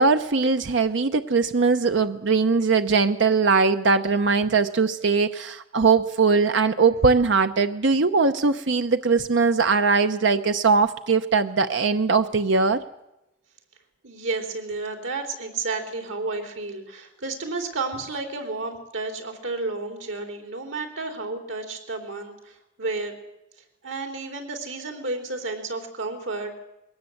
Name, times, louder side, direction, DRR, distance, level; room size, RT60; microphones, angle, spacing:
voice 1, 0.0-12.8, right 4 dB, 70° right, 9 dB, 0.8 m, -20 dB
voice 2, 14.0-23.2 23.8-26.6, right 3 dB, 90° right, 5 dB, 3.8 m, -31 dB
21.5 x 17.5 x 7.9 m, 0.91 s
head